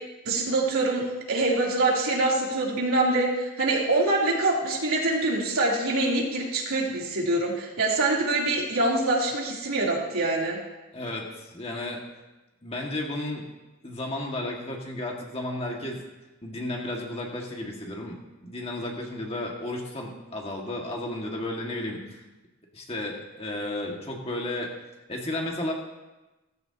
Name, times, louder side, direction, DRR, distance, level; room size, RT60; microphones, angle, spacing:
voice 1, 0.2-10.6, right 2 dB, 80° right, -4 dB, 3.4 m, -25 dB
voice 2, 10.9-12.0 12.6-13.4 13.8-16.0 16.4-22.2 22.7-24.7 25.1-25.7, left 1 dB, 25° left, -1 dB, 1.9 m, -33 dB
17.0 x 14.5 x 2.9 m, 1.1 s
head